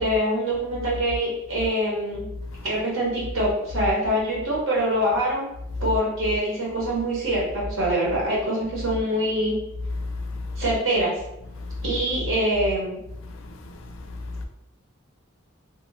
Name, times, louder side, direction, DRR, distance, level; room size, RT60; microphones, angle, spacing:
voice 1, 0.0-2.3 2.6-5.5 5.8-9.5 10.6-11.1 11.8-13.0, right 1 dB, 85° right, 1.0 m, -24 dB
voice 2, 2.3-2.7 9.9-10.6 11.6-11.9 13.2-14.5, left 2 dB, 80° left, 0.4 m, -34 dB
2.7 x 2.2 x 2.6 m
head